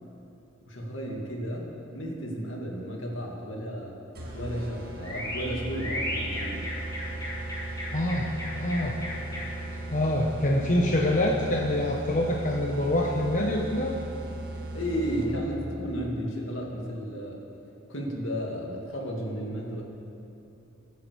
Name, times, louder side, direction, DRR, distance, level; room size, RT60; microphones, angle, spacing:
voice 1, 0.6-1.7 1.9-4.0 4.3-6.7 14.7-17.4 17.9-19.8, equal, 70° left, -1 dB, 2.4 m, -33 dB
sound 1, 4.2-9.8, left 1 dB, 20° left, 3.9 m, -36 dB
sound 2, 4.2-15.5, right 2 dB, 50° right, 2.0 m, -37 dB
voice 2, 7.9-9.0 9.9-14.0, left 1 dB, 40° left, 0 dB, 1.1 m, -26 dB
22.0 x 9.7 x 4.8 m, 2.8 s
head